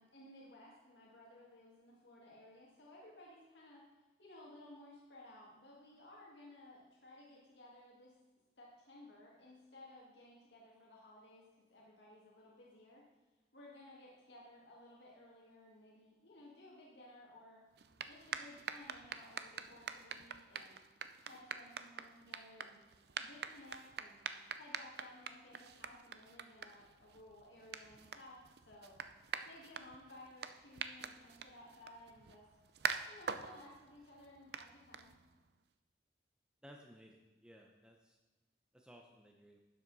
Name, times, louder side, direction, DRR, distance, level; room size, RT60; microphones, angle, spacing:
voice 1, 0.0-3.9 4.2-8.2 8.6-13.0 13.5-17.6 18.1-20.8 21.2-22.8 23.2-24.2 24.5-28.9 29.5-32.5 33.1-35.2, left 1 dB, 85° left, -4 dB, 2.0 m, -57 dB
sound 1, 17.7-35.5, right 6 dB, 70° right, 0.5 m, -46 dB
voice 2, 36.6-38.2 38.7-39.6, equal, 5° right, 1 dB, 0.7 m, -59 dB
11.5 x 7.6 x 4.1 m, 1.2 s
head